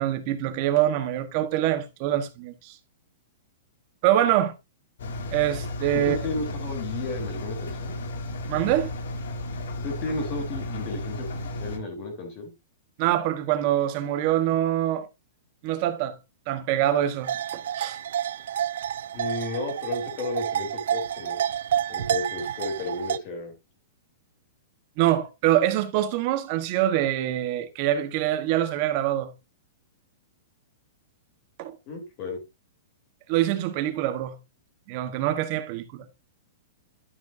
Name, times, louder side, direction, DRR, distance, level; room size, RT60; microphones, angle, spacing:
voice 1, 0.0-2.7 4.0-4.5 5.3-6.2 8.5-8.9 13.0-15.1 15.6-16.2 16.5-18.0 25.0-29.3 31.6-31.7 33.3-34.4 34.9-36.1, right 12 dB, 30° right, 1.3 m, -25 dB
Engine, 5.0-11.8, left 1 dB, 75° left, 2.5 m, -33 dB
voice 2, 5.9-8.0 9.8-12.5 19.1-21.6 21.9-23.5 31.9-32.4, left 3 dB, 30° left, 3.7 m, -33 dB
sound 1, 17.2-23.2, right 10 dB, 65° right, 0.4 m, -29 dB
12.5 x 7.1 x 2.7 m
supercardioid pair, 175°, 0 cm